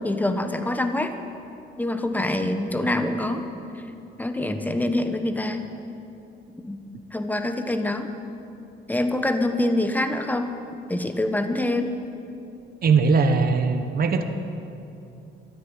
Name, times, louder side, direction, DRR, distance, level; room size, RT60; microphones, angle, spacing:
voice 1, 0.0-1.1 1.8-3.5 4.2-5.6 6.6-6.8 7.1-8.1 8.9-10.5 10.9-11.9, left 1 dB, 10° left, 7 dB, 1.2 m, -25 dB
voice 2, 12.8-14.2, right 4 dB, 50° right, 7 dB, 1.1 m, -20 dB
12.5 x 10.0 x 8.9 m, 2.8 s
cardioid pair, 90°, 20 cm